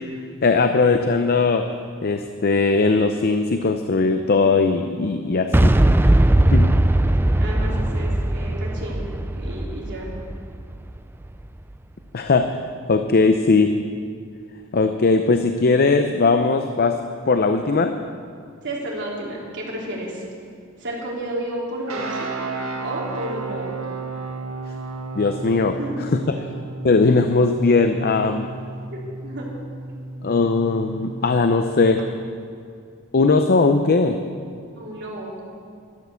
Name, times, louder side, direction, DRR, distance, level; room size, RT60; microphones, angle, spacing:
voice 1, 0.4-1.7 2.0-5.7 6.5-6.7 12.1-12.6 12.9-13.8 14.7-17.0 17.3-17.9 25.1-25.8 26.3-26.4 26.8-28.5 30.2-32.0 33.1-34.2, left 3 dB, 45° left, 7 dB, 0.6 m, -19 dB
Boom, 5.5-11.4, right 1 dB, 10° right, 0.4 m, -19 dB
voice 2, 7.4-9.1 9.3-10.1 18.6-20.2 20.8-22.4 22.8-23.8 25.8-26.0 28.9-29.5 34.8-35.4, right 1 dB, 55° right, -3 dB, 3.5 m, -31 dB
sound 1, 21.9-32.0, right 3 dB, 75° right, 1.9 m, -33 dB
12.0 x 12.0 x 7.0 m, 2.4 s
head